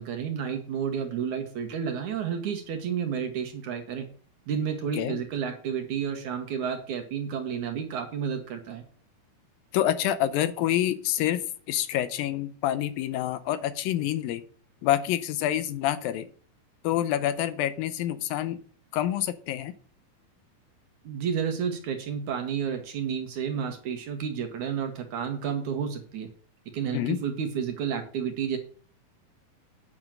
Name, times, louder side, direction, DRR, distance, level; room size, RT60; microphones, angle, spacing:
voice 1, 0.0-4.1 4.5-8.8 21.0-26.3 26.7-28.6, right 7 dB, 65° right, 6 dB, 2.2 m, -31 dB
voice 2, 9.7-11.4 11.7-14.4 14.8-16.3 16.8-18.6 18.9-19.7 26.9-27.2, left 12 dB, 80° left, 13 dB, 2.3 m, -27 dB
9.1 x 6.2 x 7.4 m, 0.43 s
omnidirectional pair, 4.3 m